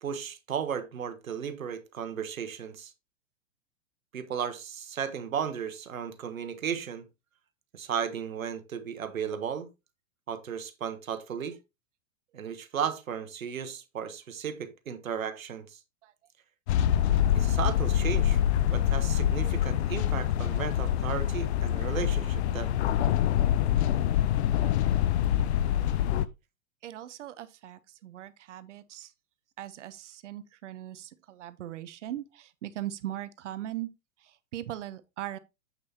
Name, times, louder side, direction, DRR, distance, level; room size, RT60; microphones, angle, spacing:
voice 1, 0.0-2.9 4.1-7.1 7.7-9.7 10.3-11.6 12.3-15.8 17.3-18.4 18.7-22.7, right 7 dB, 80° right, 1.2 m, -35 dB
sound 1, 16.7-26.3, left 11 dB, 55° left, 0.6 m, -25 dB
voice 2, 26.8-29.1 29.6-33.9 34.2-35.4, right 13 dB, 60° right, 0.8 m, -40 dB
7.5 x 6.4 x 2.8 m
hypercardioid pair, 110°, 40 cm